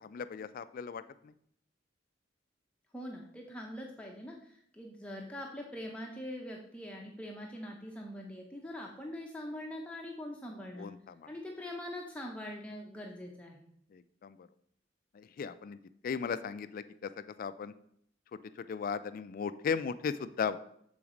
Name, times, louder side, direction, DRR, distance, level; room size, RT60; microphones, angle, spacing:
voice 1, 0.0-1.3 10.8-11.3 13.9-14.4 15.1-15.8 16.0-17.1 17.4-17.7 18.3-20.6, left 6 dB, 50° left, 13 dB, 0.3 m, -37 dB
voice 2, 2.9-10.9 11.3-13.7, left 1 dB, 5° left, -1 dB, 0.7 m, -43 dB
7.1 x 4.0 x 5.0 m, 0.68 s
head